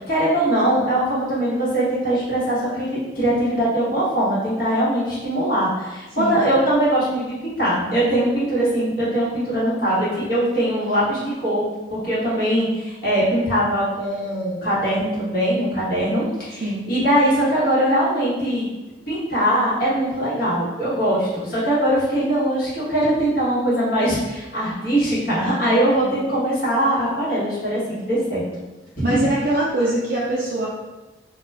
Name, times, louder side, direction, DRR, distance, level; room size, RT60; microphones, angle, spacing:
voice 1, 0.0-18.7 19.1-28.4 29.0-29.2, right 1 dB, 55° left, -9 dB, 1.2 m, -21 dB
voice 2, 26.0-26.3 29.0-30.7, right 1 dB, 55° right, -6 dB, 0.4 m, -23 dB
2.3 x 2.3 x 3.2 m, 1.1 s
head